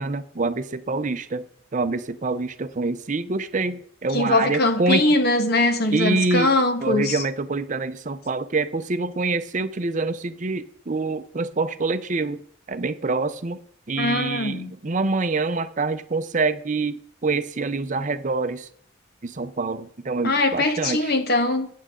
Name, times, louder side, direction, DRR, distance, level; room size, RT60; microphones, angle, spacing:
voice 1, 0.0-1.4 1.7-5.0 5.9-6.5 6.8-12.4 12.7-13.6 13.9-18.7 19.2-21.1, right 3 dB, 40° right, 0.6 m, -26 dB
voice 2, 4.1-7.2 14.0-14.7 20.2-21.7, left 2 dB, 50° left, 1.4 m, -21 dB
15.0 x 9.2 x 3.7 m
head